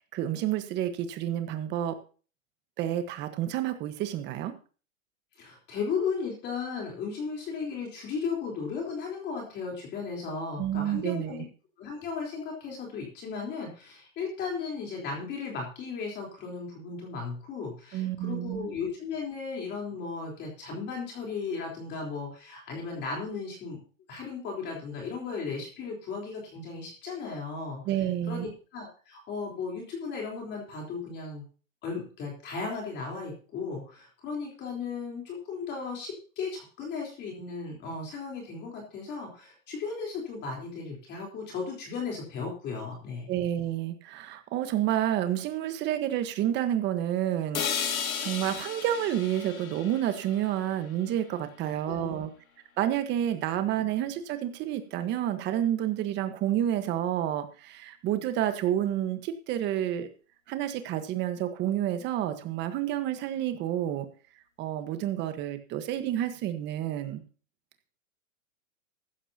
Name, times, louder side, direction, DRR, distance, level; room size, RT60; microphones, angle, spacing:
voice 1, 0.0-2.0 2.8-4.5 10.6-11.4 17.9-18.7 27.9-28.5 43.3-52.3 52.8-60.1 60.5-64.1 64.6-67.2, right 11 dB, 25° right, 9 dB, 1.4 m, -29 dB
voice 2, 5.4-11.4 11.8-23.8 24.1-27.8 28.3-31.4 31.8-43.3 51.7-52.3 53.7-53.8, left 5 dB, 25° left, -1 dB, 3.9 m, -36 dB
sound 1, 47.5-51.6, left 7 dB, 90° left, 2.4 m, -35 dB
15.0 x 13.0 x 2.9 m, 0.39 s
hypercardioid pair, 150°, 41 cm